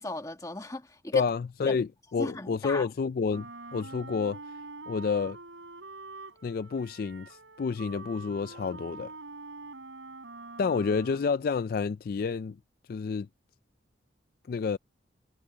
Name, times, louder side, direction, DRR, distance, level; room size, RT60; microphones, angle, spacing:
voice 1, 0.0-1.2 1.7-1.8 2.2-2.9, left 2 dB, 20° left, 1.7 m, -36 dB
voice 2, 1.1-4.4 4.9-5.4 6.4-9.1 10.6-12.6 12.9-13.3 14.5-14.8, left 5 dB, 50° left, 0.3 m, -29 dB
Wind instrument woodwind instrument, 3.3-11.4, right 3 dB, 85° right, 4.8 m, -45 dB
head